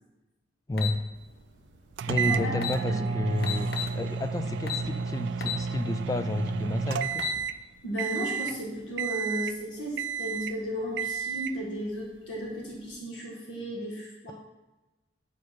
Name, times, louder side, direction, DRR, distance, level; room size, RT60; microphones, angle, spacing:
voice 1, 0.7-1.0 2.1-7.2, left 2 dB, 20° left, 9 dB, 0.3 m, -31 dB
sound 1, 0.8-1.0 2.2-2.3 2.5-2.8 3.4-3.9 4.7-4.9 5.4-5.6 6.1-6.2 7.0-7.4, left 9 dB, 55° left, 0.7 m, -32 dB
sound 2, 2.0-7.6 8.0-8.6 9.0-9.6 10.0-10.6 11.0-11.6, right 5 dB, 70° right, 0.3 m, -31 dB
voice 2, 2.2-2.5 2.9-3.1 7.8-14.3, equal, 80° left, -3 dB, 1.8 m, -34 dB
8.1 x 4.7 x 4.4 m, 1.1 s
head